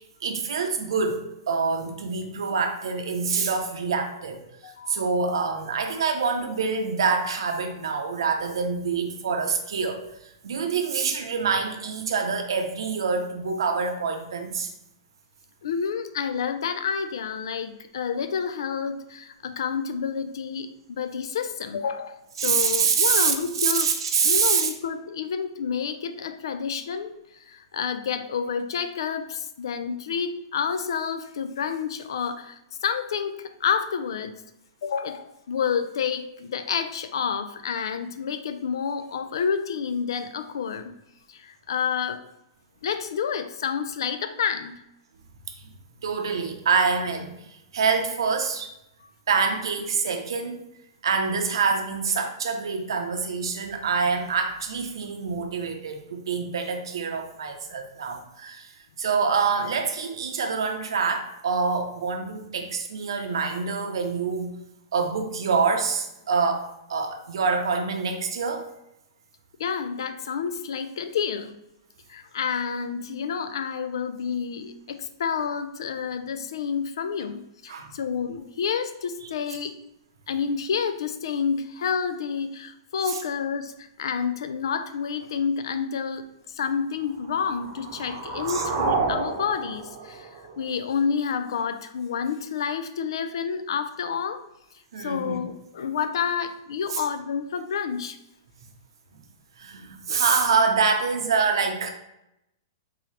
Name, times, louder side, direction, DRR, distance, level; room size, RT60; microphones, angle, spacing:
voice 1, 0.0-14.7 22.4-24.7 46.0-47.4 47.7-48.7 49.3-50.6 51.0-64.5 64.9-68.7 77.7-77.9 83.1-83.2 88.5-88.6 94.9-95.4 96.9-97.0 99.6-101.9, right 5 dB, 85° right, 4 dB, 0.6 m, -26 dB
voice 2, 4.6-5.1 15.6-24.0 24.2-27.1 27.5-34.4 34.8-40.9 41.3-42.2 42.8-44.7 69.6-71.5 72.1-79.8 80.3-90.3 90.6-94.4 95.0-98.2 100.1-100.2, left 6 dB, 75° left, 10 dB, 0.4 m, -29 dB
sound 1, 87.2-91.2, right 4 dB, 50° right, 0.7 m, -30 dB
3.8 x 2.8 x 3.1 m, 0.85 s
hypercardioid pair, 155°, 2 cm